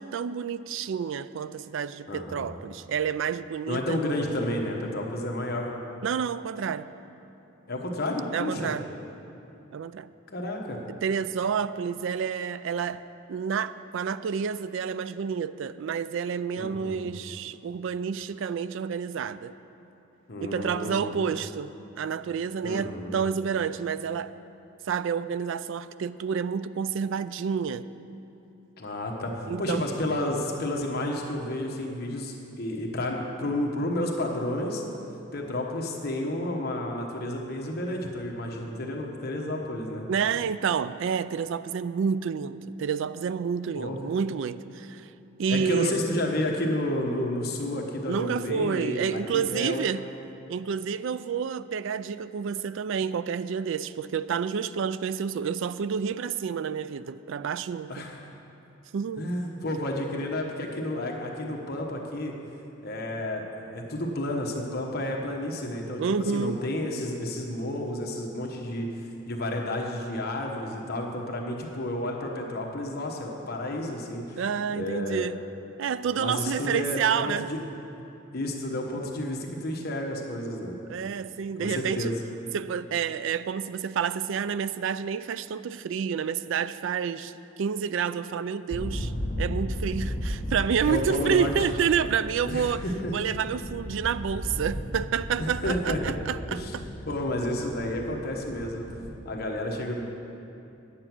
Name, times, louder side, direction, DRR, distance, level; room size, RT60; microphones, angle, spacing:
voice 1, 0.0-4.0 6.0-6.9 8.3-8.9 9.7-10.1 10.9-13.0 13.3-19.5 20.4-24.3 24.9-27.9 29.5-29.9 40.1-45.1 45.4-46.0 48.1-50.1 50.5-58.0 58.9-59.3 61.8-61.9 66.0-66.6 74.4-75.4 75.8-77.5 80.9-82.1 82.5-87.3 87.6-89.1 89.4-92.8 93.1-96.8, right 7 dB, 60° right, 15 dB, 0.3 m, -29 dB
voice 2, 2.1-2.5 3.7-5.7 7.7-8.7 10.3-10.8 16.6-17.1 20.3-21.1 22.6-23.2 28.8-34.8 35.3-40.0 43.7-44.0 45.5-49.8 57.9-58.2 59.2-62.3 62.8-66.0 66.3-68.9 69.3-74.4 74.7-75.3 76.2-77.6 78.3-80.7 81.6-82.1 90.9-91.5 92.4-93.1 95.4-96.2 96.5-96.8 97.1-98.9 99.2-100.0, left 1 dB, 45° left, 0 dB, 1.2 m, -31 dB
sound 1, 88.7-99.2, equal, 15° left, 1.7 m, -35 dB
9.9 x 8.1 x 6.1 m, 2.8 s
head